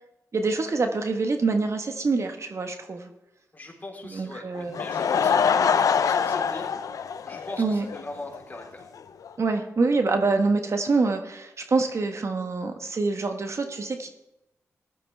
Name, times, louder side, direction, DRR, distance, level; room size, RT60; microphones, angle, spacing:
voice 1, 0.3-3.1 4.0-4.9 7.6-7.8 9.4-14.1, right 3 dB, 55° right, 6 dB, 1.3 m, -25 dB
voice 2, 3.5-6.7 7.3-8.8, left 2 dB, 30° left, 0 dB, 3.9 m, -40 dB
Laughter / Crowd, 4.5-8.0 8.3-8.4 9.0-9.1 9.2-9.3, left 6 dB, 75° left, 0.6 m, -24 dB
15.0 x 11.5 x 3.5 m, 0.92 s
cardioid pair, 60°, 6 cm